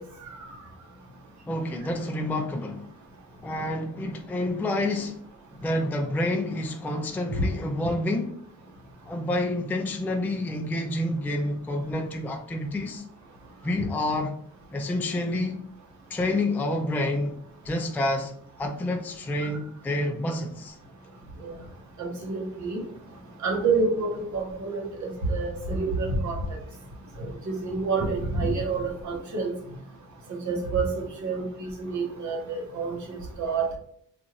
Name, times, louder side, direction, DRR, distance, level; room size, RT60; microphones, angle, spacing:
voice 1, 0.2-0.5 21.4-21.5 22.0-22.8 23.4-26.4 27.2-29.5 30.3-33.7, right 4 dB, 60° right, 1.1 m, -28 dB
voice 2, 1.5-2.9 3.4-5.3 5.6-8.3 9.1-13.0 13.6-14.4 14.7-15.6 16.1-17.4 17.6-20.8, left 1 dB, 5° left, 0.3 m, -28 dB
2.5 x 2.4 x 3.1 m
cardioid pair, 70°, 32 cm